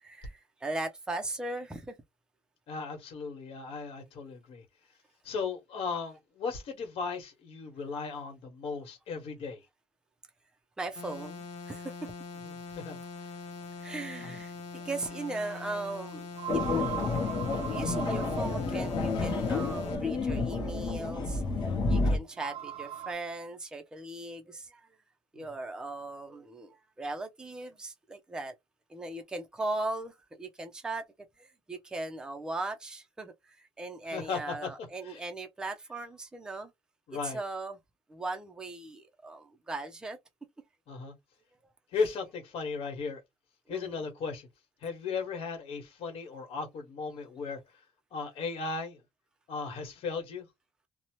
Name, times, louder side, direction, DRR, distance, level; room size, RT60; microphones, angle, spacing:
voice 1, 0.0-1.9 10.8-12.1 13.8-16.3 16.5-16.6 17.7-21.4 21.9-24.8 25.3-28.5 28.9-31.1 31.4-36.7 37.2-37.8 38.1-40.2 43.7-44.0, right 2 dB, 5° right, 0.4 m, -38 dB
voice 2, 2.7-4.6 5.2-9.6 12.4-13.3 14.2-14.4 34.1-34.7 35.0-35.2 37.1-37.4 40.9-41.1 41.9-43.2 43.7-44.5 44.8-47.6 48.1-49.0 49.5-50.5, left 4 dB, 65° left, 1.2 m, -36 dB
sound 1, 11.0-20.0, left 4 dB, 90° left, 0.7 m, -43 dB
sound 2, 14.6-14.7 16.3-18.7 20.6-20.7 22.3-23.1, right 10 dB, 70° right, 0.4 m, -39 dB
sound 3, 16.5-22.2, left 3 dB, 50° left, 0.9 m, -30 dB
2.7 x 2.0 x 2.9 m
cardioid pair, 175°, 10 cm